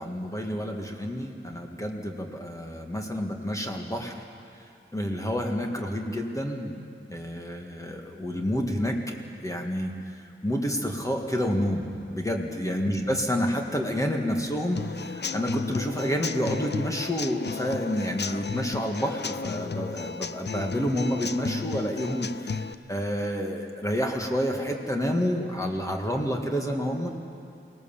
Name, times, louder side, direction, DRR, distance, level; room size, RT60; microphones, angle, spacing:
voice 1, 0.0-4.2 4.9-6.7 7.1-9.2 9.4-27.1, equal, 15° left, 1 dB, 1.8 m, -29 dB
Human voice / Acoustic guitar / Drum, 14.8-22.7, left 5 dB, 55° left, 0.6 m, -34 dB
24.0 x 18.0 x 7.3 m, 2.4 s
wide cardioid pair, 100°, 21 cm